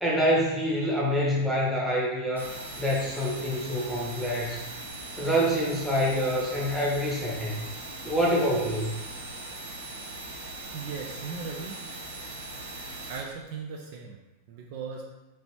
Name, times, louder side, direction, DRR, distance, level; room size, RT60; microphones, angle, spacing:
voice 1, 0.0-4.6 5.2-7.6 8.0-8.9, equal, ahead, -5 dB, 0.9 m, -26 dB
sound 1, 2.4-13.2, right 2 dB, 80° right, 0.7 m, -40 dB
voice 2, 10.7-11.8 13.1-14.2 14.5-15.0, right 5 dB, 45° right, 0 dB, 0.3 m, -38 dB
2.9 x 2.9 x 2.9 m, 1.1 s
figure-of-eight pair, 90°, 0 cm